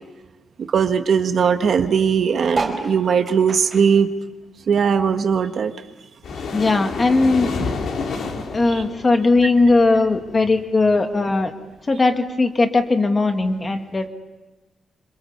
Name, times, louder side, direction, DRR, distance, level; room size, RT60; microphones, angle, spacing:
voice 1, 0.7-4.1 4.7-5.7 8.7-8.8, right 6 dB, 50° right, 7 dB, 1.4 m, -19 dB
sound 1, 2.5-5.3 5.6-7.1 7.6-7.7 7.9-8.0 8.2-8.6 9.3-9.4, right 3 dB, 30° right, 4.5 m, -32 dB
sound 2, 6.2-10.6, left 4 dB, 65° left, 4.4 m, -29 dB
voice 2, 6.5-7.5 8.5-11.5 11.9-14.1, left 3 dB, 20° left, 6 dB, 1.9 m, -18 dB
27.0 x 26.5 x 7.2 m, 1.1 s
wide cardioid pair, 175°, 0 cm